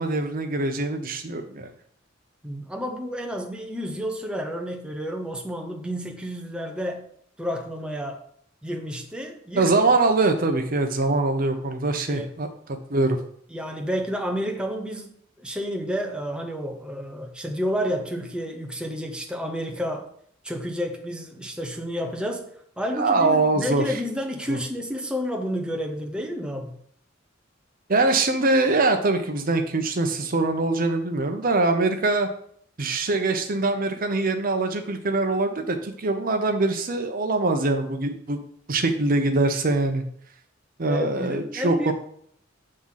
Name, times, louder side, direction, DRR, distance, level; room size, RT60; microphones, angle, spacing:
voice 1, 0.0-1.7 9.6-12.5 12.9-13.2 23.0-23.8 24.5-24.6 27.9-32.3 32.8-38.4 38.7-40.0 40.8-41.9, right 2 dB, 45° right, 6 dB, 0.8 m, -23 dB
voice 2, 2.4-7.0 7.4-8.2 8.6-9.7 12.1-12.3 13.5-20.1 20.4-22.5 22.8-26.8 40.8-41.9, equal, 5° right, 2 dB, 0.7 m, -30 dB
7.7 x 3.8 x 5.7 m, 0.65 s
head